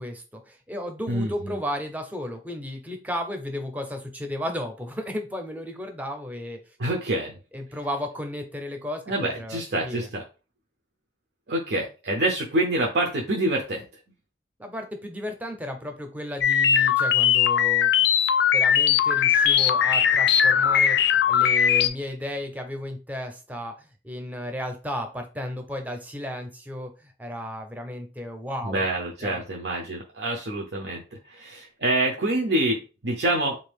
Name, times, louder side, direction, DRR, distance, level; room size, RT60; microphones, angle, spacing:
voice 1, 0.0-6.6 7.5-10.1 14.6-17.9 18.5-28.8 29.2-29.4, left 1 dB, 10° right, 5 dB, 0.6 m, -34 dB
voice 2, 1.1-1.6 6.8-7.3 9.1-10.2 11.5-13.9 28.7-31.0 31.3-33.6, right 1 dB, 65° right, 0 dB, 0.6 m, -26 dB
sound 1, 16.4-21.9, left 8 dB, 70° left, 0.3 m, -20 dB
3.8 x 2.6 x 3.4 m, 0.32 s
head